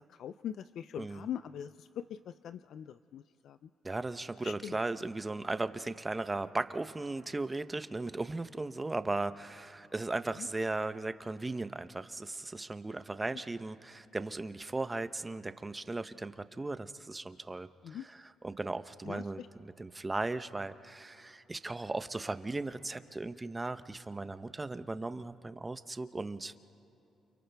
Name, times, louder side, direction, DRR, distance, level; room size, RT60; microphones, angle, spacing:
voice 1, 0.2-1.9 2.4-3.6 4.4-4.7 17.8-18.0 19.1-19.5, left 9 dB, 70° left, 12 dB, 0.4 m, -42 dB
voice 2, 1.0-1.3 3.8-26.5, right 2 dB, 20° right, 11 dB, 0.8 m, -37 dB
29.5 x 29.5 x 3.5 m, 2.9 s
cardioid pair, 90°, 0 cm